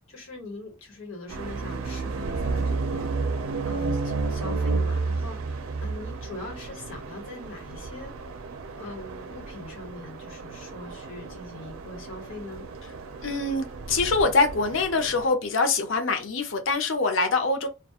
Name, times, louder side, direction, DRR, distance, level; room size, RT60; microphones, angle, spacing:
voice 1, 0.1-3.1 3.6-5.4 5.8-8.1 8.8-12.6, left 2 dB, 80° left, 1.2 m, -41 dB
sound 1, 1.3-15.3, right 3 dB, 90° right, 0.4 m, -32 dB
voice 2, 13.2-17.7, left 3 dB, 65° left, 0.5 m, -24 dB
2.3 x 2.2 x 2.8 m
head